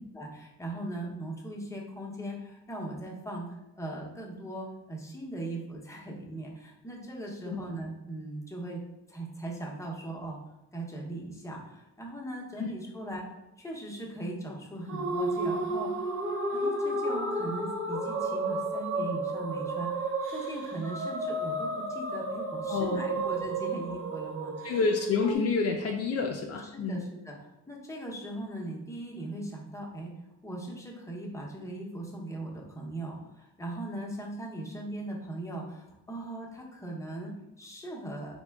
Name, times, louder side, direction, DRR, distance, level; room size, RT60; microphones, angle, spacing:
voice 1, 0.1-3.5 3.8-8.8 9.1-10.4 10.7-24.7 26.7-27.3 27.7-30.1 30.4-38.4, right 1 dB, 10° left, -1 dB, 0.8 m, -39 dB
sound 1, 14.9-25.4, right 2 dB, 45° right, 0.7 m, -32 dB
voice 2, 22.7-23.2 24.6-27.0, left 4 dB, 55° left, 2 dB, 0.4 m, -29 dB
3.5 x 2.2 x 3.5 m, 0.91 s
cardioid pair, 90°, 30 cm